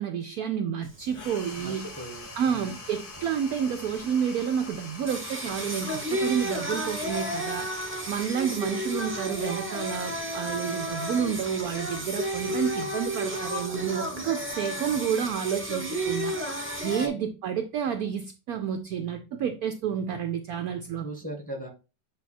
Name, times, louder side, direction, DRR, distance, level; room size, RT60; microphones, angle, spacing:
voice 1, 0.0-1.8 2.4-7.7 8.1-16.4 16.8-21.0, right 8 dB, 70° right, 0.9 m, -30 dB
Singing, 0.8-17.1, right 1 dB, 10° right, 0.6 m, -33 dB
sound 1, 1.1-10.0, left 3 dB, 35° left, 0.9 m, -45 dB
voice 2, 1.6-2.8 17.0-17.1 21.0-21.7, right 1 dB, 5° left, 1.5 m, -39 dB
7.7 x 2.8 x 4.2 m
omnidirectional pair, 2.0 m